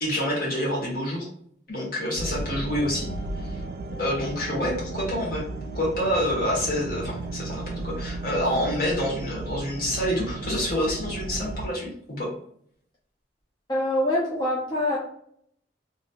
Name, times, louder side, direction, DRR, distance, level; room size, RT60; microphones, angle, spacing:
voice 1, 0.0-1.3 1.7-3.1 3.4-3.6 4.0-5.4 5.7-12.3, equal, 50° left, -3 dB, 1.3 m, -27 dB
sound 1, 2.1-11.7, right 2 dB, 55° right, 0.3 m, -34 dB
voice 2, 13.7-15.0, left 1 dB, 25° left, -6 dB, 0.6 m, -24 dB
3.2 x 2.6 x 2.4 m, 0.65 s
head